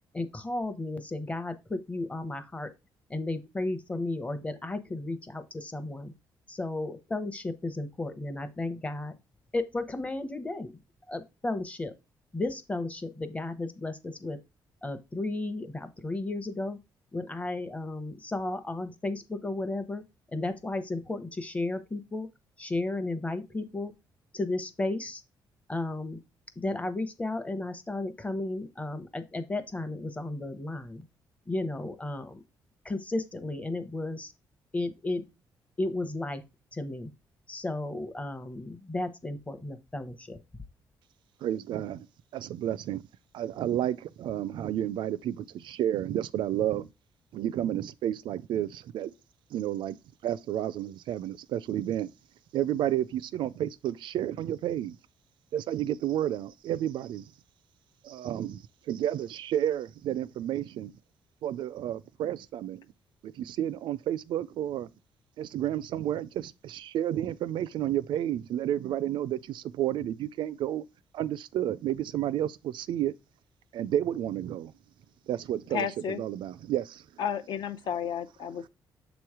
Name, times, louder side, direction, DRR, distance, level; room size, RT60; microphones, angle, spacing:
voice 1, 0.1-2.7 3.1-6.1 6.5-9.1 9.5-10.7 11.1-11.9 12.3-14.4 14.8-16.8 17.1-20.0 20.3-22.3 22.6-23.9 24.3-25.2 25.7-26.2 26.6-31.0 31.5-32.4 32.8-34.3 34.7-35.2 35.8-36.4 36.7-37.1 37.5-40.4, left 2 dB, 15° left, 0.8 m, -33 dB
voice 2, 41.4-42.1 42.3-43.0 43.3-46.9 47.3-49.1 49.5-50.0 50.2-52.1 52.5-55.0 55.5-57.3 58.0-58.6 58.9-60.9 61.4-62.9 63.2-64.9 65.4-70.8 71.1-73.1 73.7-74.7 75.3-75.9 76.2-77.0, right 11 dB, 75° right, 0.4 m, -31 dB
voice 3, 75.7-76.2 77.2-78.7, left 8 dB, 65° left, 0.7 m, -32 dB
7.0 x 3.1 x 4.7 m
cardioid pair, 125°, 8 cm